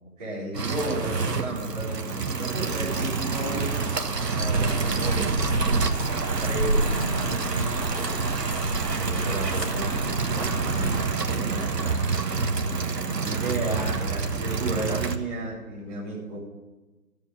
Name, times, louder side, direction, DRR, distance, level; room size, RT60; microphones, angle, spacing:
voice 1, 0.0-12.1 12.6-16.4, right 2 dB, 5° right, -16 dB, 3.0 m, -34 dB
sound 1, 0.5-15.2, right 4 dB, 80° right, 1.4 m, -28 dB
Leaves walking, 2.8-11.0, right 1 dB, 20° right, 1.2 m, -30 dB
14.5 x 7.1 x 7.8 m, 1.2 s
figure-of-eight pair, 180°, 48 cm